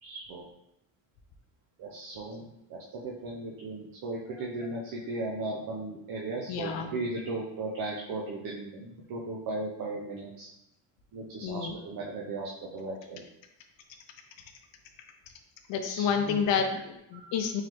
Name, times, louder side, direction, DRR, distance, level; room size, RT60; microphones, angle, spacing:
voice 1, 0.0-0.4 1.8-10.5 11.1-13.2 15.8-16.4 17.1-17.3, right 2 dB, 50° right, -3 dB, 0.6 m, -37 dB
voice 2, 6.5-6.9 11.4-11.8 15.7-17.6, left 6 dB, 75° left, 5 dB, 0.5 m, -29 dB
3.7 x 3.1 x 3.0 m, 0.82 s
cardioid pair, 170°, 44 cm